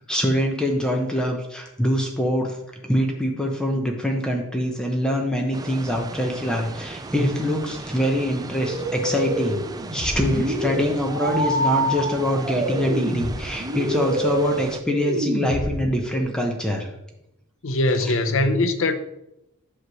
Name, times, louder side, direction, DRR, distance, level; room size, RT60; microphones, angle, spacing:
voice 1, 0.1-2.6 2.8-9.6 9.9-16.9 18.1-18.2, equal, 5° left, 0.8 m, -24 dB
sound 1, 5.5-14.8, right 2 dB, 20° right, 0.3 m, -37 dB
sound 2, 8.6-16.2, right 1 dB, 35° right, 1.1 m, -27 dB
voice 2, 17.6-18.9, left 2 dB, 65° left, 0.7 m, -21 dB
7.9 x 3.1 x 6.2 m
head